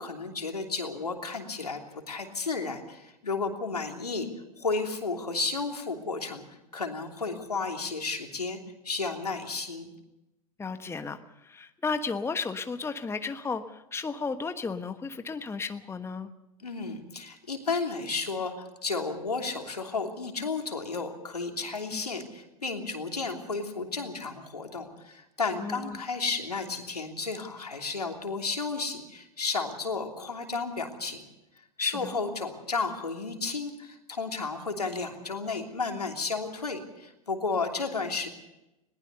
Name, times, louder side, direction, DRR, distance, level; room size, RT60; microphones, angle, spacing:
voice 1, 0.0-1.8 2.1-4.3 4.6-6.4 6.7-8.6 8.8-9.9 16.6-31.2 31.8-38.3, left 4 dB, 90° left, 3 dB, 3.1 m, -33 dB
voice 2, 10.6-16.3 21.9-22.0 25.6-26.0 31.8-32.1, left 4 dB, 15° left, 9 dB, 1.3 m, -34 dB
21.0 x 19.5 x 6.7 m, 0.92 s
hypercardioid pair, 90°, 19 cm